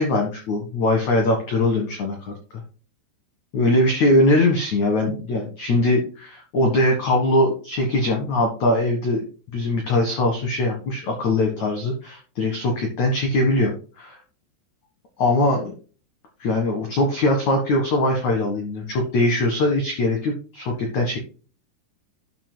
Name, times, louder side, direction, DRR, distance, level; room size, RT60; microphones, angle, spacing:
voice 1, 0.0-2.3 3.5-9.2 9.5-14.2 15.2-15.7 16.4-21.2, left 1 dB, 60° left, 2 dB, 2.0 m, -21 dB
13.0 x 6.9 x 2.2 m, 0.36 s
omnidirectional pair, 5.5 m